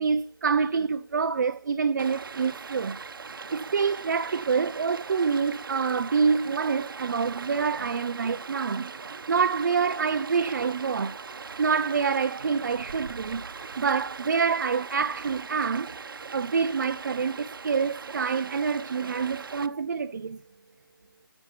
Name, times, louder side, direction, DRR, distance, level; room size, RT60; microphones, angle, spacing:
voice 1, 0.0-3.0 3.3-9.0 9.3-11.2 11.6-13.5 13.8-16.0 16.3-20.4, right 5 dB, 50° right, 0.4 m, -26 dB
Stream, 2.0-19.7, right 5 dB, 65° right, 0.8 m, -40 dB
15.5 x 6.2 x 3.0 m
hypercardioid pair, 175°, 12 cm